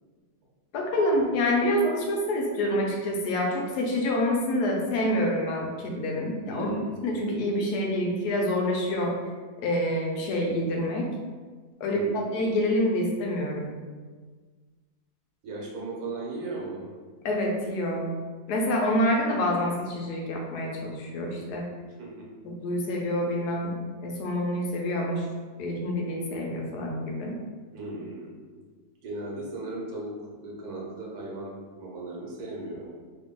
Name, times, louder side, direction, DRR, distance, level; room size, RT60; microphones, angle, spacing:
voice 1, 0.7-6.7 7.0-9.1 9.6-11.1 11.8-12.0 12.3-13.7 17.2-18.1 18.5-21.6 22.4-25.3 25.6-27.4, left 1 dB, 80° left, 0 dB, 1.2 m, -27 dB
voice 2, 6.5-7.0 11.8-12.4 15.4-16.9 22.0-22.3 27.7-28.6 29.0-30.1 30.4-32.9, right 2 dB, 70° right, -3 dB, 1.3 m, -37 dB
3.0 x 2.6 x 3.6 m, 1.4 s
omnidirectional pair, 1.7 m